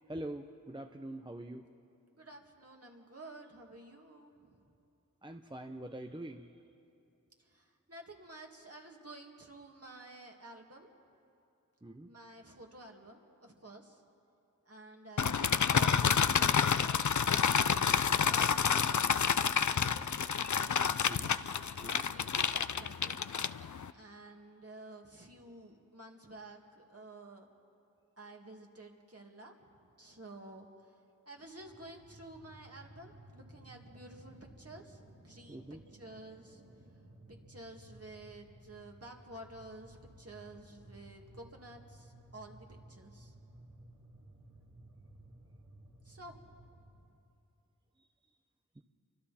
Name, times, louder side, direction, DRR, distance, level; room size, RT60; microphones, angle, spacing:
voice 1, 0.1-1.7 5.2-6.5 11.8-12.1 18.5-18.8 21.1-21.3 21.8-22.1 35.5-35.8 48.8-48.9, right 1 dB, 15° right, 5 dB, 0.7 m, -44 dB
voice 2, 2.1-4.6 7.4-10.9 12.0-14.0 14.7-17.0 18.3-19.1 19.8-21.4 21.8-23.2 23.9-27.5 28.2-29.5 29.8-30.7 31.3-36.6 37.3-43.3 46.0-46.4, right 2 dB, 40° right, 1 dB, 2.3 m, -52 dB
sound 1, 15.2-23.9, left 7 dB, 55° left, 0.5 m, -29 dB
sound 2, 31.6-47.0, right 1 dB, 60° right, 3.5 m, -57 dB
29.5 x 24.5 x 4.3 m, 2.7 s
wide cardioid pair, 45°, 35 cm